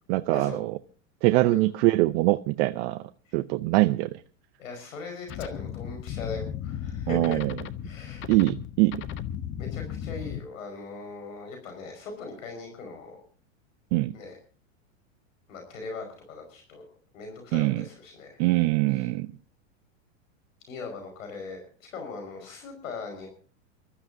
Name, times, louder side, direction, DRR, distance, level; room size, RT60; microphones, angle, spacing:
voice 1, 0.1-0.8 1.2-3.0 3.3-4.2 7.1-7.5 8.3-9.1 13.9-14.1 17.5-17.8 18.4-19.3, right 19 dB, 50° right, 10 dB, 0.7 m, -23 dB
voice 2, 4.6-7.4 7.8-8.2 9.6-13.2 14.1-14.4 15.5-16.8 17.1-18.4 18.9-19.1 20.7-23.3, left 3 dB, 85° left, 4 dB, 5.4 m, -39 dB
sound 1, 5.3-10.4, left 10 dB, 30° left, 0.9 m, -35 dB
28.5 x 13.0 x 2.7 m, 0.38 s
hypercardioid pair, 125°, 39 cm